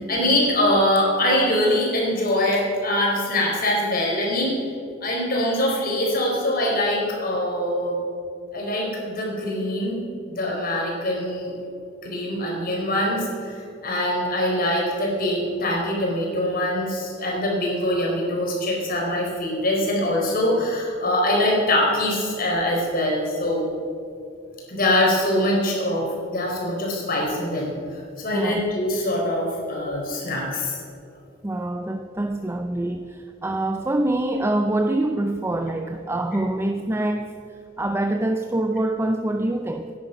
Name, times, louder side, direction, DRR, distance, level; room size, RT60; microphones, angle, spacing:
voice 1, 0.0-4.5 5.0-8.0 8.5-11.5 12.0-23.6 24.7-30.8, left 1 dB, 50° left, -2 dB, 4.4 m, -23 dB
voice 2, 28.3-28.7 31.4-37.3 37.8-39.9, right 1 dB, 15° right, 6 dB, 0.5 m, -25 dB
17.0 x 10.5 x 6.0 m, 2.5 s
head